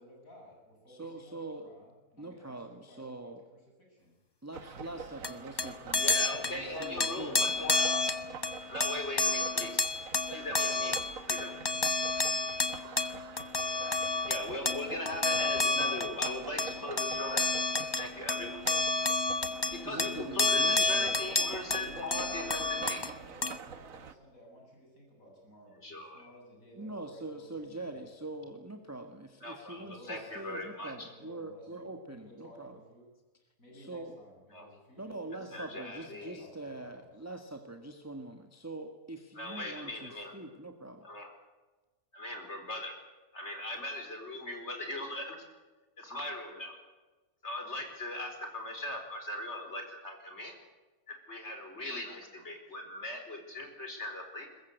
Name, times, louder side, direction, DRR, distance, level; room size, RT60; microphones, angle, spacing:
voice 1, 0.0-3.6 3.9-4.2 5.9-6.3 16.6-17.0 17.4-17.6 21.3-28.1 29.7-30.7 31.0-33.1 33.6-37.1, equal, 65° left, -1 dB, 8.3 m, -55 dB
voice 2, 0.9-1.7 2.2-3.4 4.4-7.6 19.8-21.2 26.8-32.8 33.7-34.1 35.0-41.1, right 2 dB, 10° right, 5 dB, 1.6 m, -44 dB
sound 1, 4.5-24.1, right 6 dB, 65° right, 1.6 m, -47 dB
sound 2, 5.2-23.1 23.4-23.6, left 3 dB, 20° left, 0.9 m, -30 dB
voice 3, 6.0-8.1 8.7-9.8 10.3-11.0 11.3-11.6 14.2-17.5 18.0-18.6 19.7-23.0 25.8-26.3 29.4-31.1 34.5-34.7 35.5-36.4 39.4-40.3 41.0-41.3 42.1-42.9 43.3-45.4 46.0-46.7 47.4-50.5 51.3-54.5, left 1 dB, 45° left, 4 dB, 4.9 m, -39 dB
22.0 x 21.0 x 8.1 m, 1.2 s
omnidirectional pair, 1.6 m